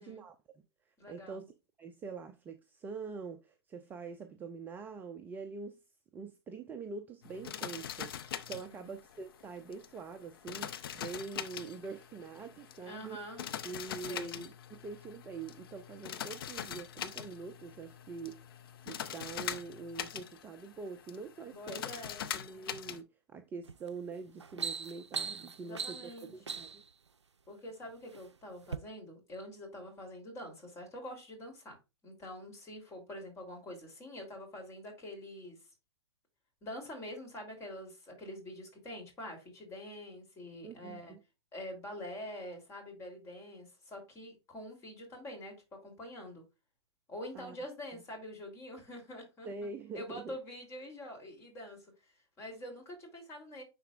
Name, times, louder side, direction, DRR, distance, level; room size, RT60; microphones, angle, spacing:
voice 1, 0.0-1.4 1.8-5.8 6.1-13.2 13.6-18.5 18.8-21.8 22.3-26.8 40.6-41.2 47.3-47.6 49.5-50.4, right 4 dB, 15° right, 0.5 m, -45 dB
voice 2, 1.0-1.5 8.6-9.0 12.8-13.4 14.1-14.4 21.4-22.3 25.6-26.6 27.5-31.8 32.0-35.6 36.6-41.1 41.5-46.4 47.1-49.7 49.9-53.6, left 1 dB, 20° left, 3.3 m, -46 dB
sound 1, 7.2-23.0, left 9 dB, 55° left, 0.8 m, -43 dB
sound 2, 23.6-23.9 24.3-26.9 27.7-28.2 28.6-28.8, right 5 dB, 90° right, 0.4 m, -39 dB
10.0 x 4.1 x 2.5 m
figure-of-eight pair, 120°, 14 cm